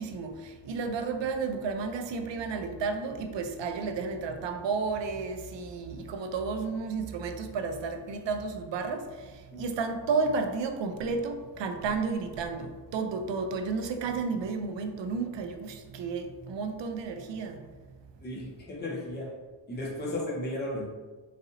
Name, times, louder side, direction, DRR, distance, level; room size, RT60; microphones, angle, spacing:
voice 1, 0.0-9.1 9.6-17.6, right 4 dB, 75° right, 0.6 m, -32 dB
voice 2, 18.2-19.3 19.7-20.9, left 1 dB, 25° left, 0.7 m, -34 dB
4.1 x 2.6 x 3.8 m
wide cardioid pair, 145°, 45 cm